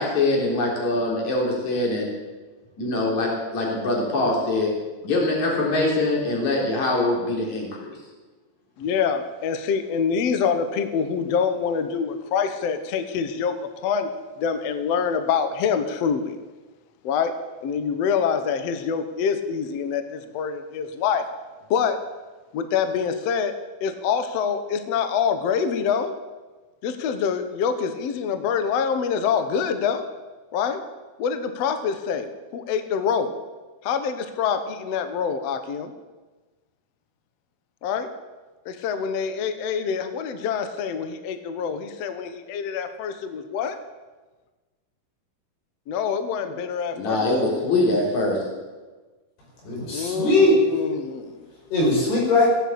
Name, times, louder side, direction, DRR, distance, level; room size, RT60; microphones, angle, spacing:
voice 1, 0.0-2.1 2.8-4.7 5.0-8.0 46.9-48.4, left 2 dB, 50° left, -1 dB, 4.8 m, -23 dB
voice 2, 8.8-14.1 14.4-16.3 17.0-17.3 17.6-21.3 21.7-22.0 22.5-23.5 23.8-26.1 26.8-30.0 30.5-30.8 31.2-32.3 32.5-33.4 33.8-35.9 37.8-38.1 38.6-43.8 45.9-47.3 49.9-51.5, left 6 dB, 70° left, 9 dB, 1.6 m, -25 dB
voice 3, 49.6-50.6 51.7-52.5, left 2 dB, 90° left, -3 dB, 7.4 m, -19 dB
16.5 x 9.4 x 8.6 m, 1.3 s
omnidirectional pair, 4.4 m